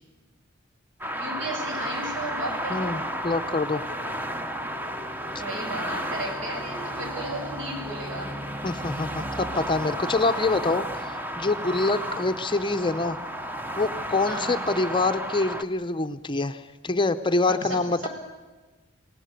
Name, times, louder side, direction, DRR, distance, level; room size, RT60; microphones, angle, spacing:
sound 1, 1.0-15.6, equal, 10° right, 1.0 m, -33 dB
voice 1, 1.1-3.0 5.4-8.3 11.9-12.0 14.2-14.6 17.5-18.1, right 1 dB, 65° right, 2 dB, 7.2 m, -35 dB
voice 2, 2.7-3.8 8.6-13.2 13.8-18.1, left 3 dB, 25° left, 9 dB, 0.7 m, -26 dB
26.5 x 18.0 x 8.2 m, 1.3 s
head